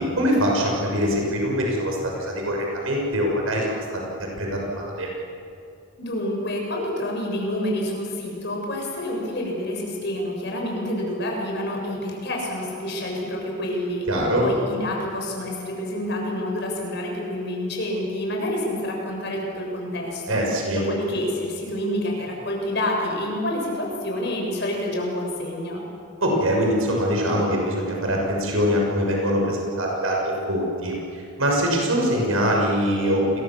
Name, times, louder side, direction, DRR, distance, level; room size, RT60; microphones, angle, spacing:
voice 1, 0.0-4.1 4.4-5.1 14.1-14.4 20.3-20.8 26.2-33.2, equal, 75° right, -1 dB, 6.3 m, -23 dB
voice 2, 6.0-14.1 14.4-20.5 20.7-25.8, left 1 dB, 50° left, 0 dB, 7.1 m, -28 dB
29.5 x 22.5 x 7.5 m, 2.6 s
head